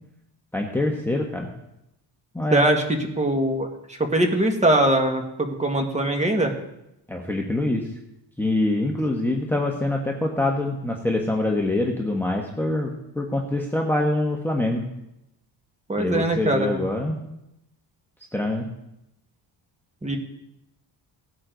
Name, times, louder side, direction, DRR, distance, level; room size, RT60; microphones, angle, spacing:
voice 1, 0.5-1.5 2.3-2.6 7.1-7.8 8.4-14.9 16.0-17.2 18.3-18.7, left 2 dB, 5° left, 0 dB, 1.3 m, -25 dB
voice 2, 2.5-6.5 15.9-16.8 20.0-20.2, right 1 dB, 15° right, 3 dB, 1.9 m, -22 dB
18.0 x 9.5 x 4.0 m, 0.85 s
cardioid pair, 135°, 45 cm